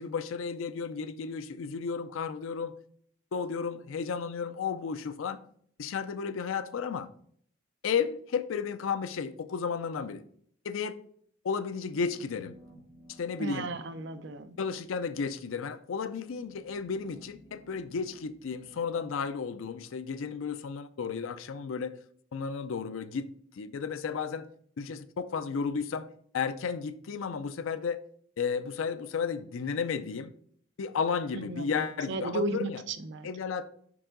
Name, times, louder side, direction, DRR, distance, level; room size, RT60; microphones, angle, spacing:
voice 1, 0.0-2.8 3.3-5.4 5.8-7.1 7.8-10.2 10.6-11.0 11.4-12.6 13.2-13.7 14.6-21.9 22.3-23.3 23.5-24.5 24.8-26.1 26.3-28.0 28.4-30.3 30.8-32.9 33.2-33.7, left 6 dB, 75° left, 0.4 m, -33 dB
sound 1, 11.7-20.6, right 1 dB, 25° left, 2.3 m, -58 dB
voice 2, 13.4-14.6 31.3-33.3, right 2 dB, 60° right, 0.5 m, -35 dB
5.4 x 4.7 x 3.8 m
head